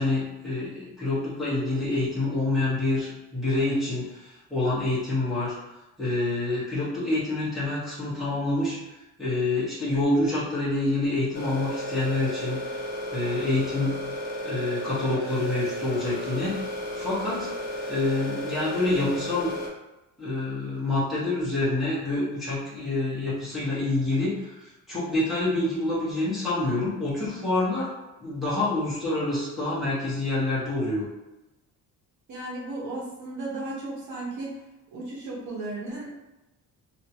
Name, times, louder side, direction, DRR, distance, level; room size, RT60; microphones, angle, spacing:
voice 1, 0.0-5.6 6.0-8.8 9.2-12.6 13.1-13.9 14.4-16.6 16.9-17.5 17.9-19.5 20.2-27.9 28.2-31.1, left 2 dB, ahead, -11 dB, 1.2 m, -27 dB
sound 1, 11.3-19.7, equal, 30° left, 0.8 m, -33 dB
voice 2, 32.3-34.6 34.9-36.1, right 2 dB, 60° right, -4 dB, 1.2 m, -35 dB
2.9 x 2.6 x 2.9 m, 0.99 s
cardioid pair, 175°, 33 cm